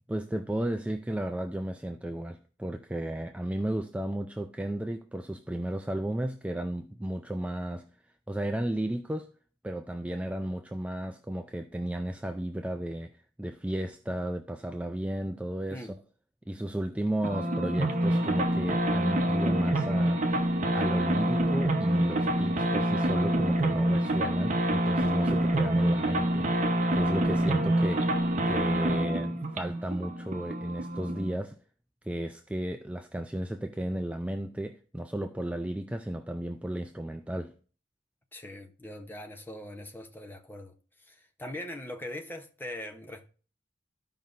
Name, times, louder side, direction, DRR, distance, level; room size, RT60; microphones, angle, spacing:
voice 1, 0.1-7.8 8.3-9.3 9.6-13.1 13.4-15.9 16.5-26.5 26.9-28.1 28.5-31.6 32.0-37.5, right 1 dB, 5° right, 0.4 m, -34 dB
sound 1, 17.2-31.3, right 1 dB, 40° right, 0.9 m, -26 dB
voice 2, 38.3-40.7 41.1-43.3, left 1 dB, 10° left, 0.8 m, -41 dB
14.0 x 5.3 x 2.5 m
head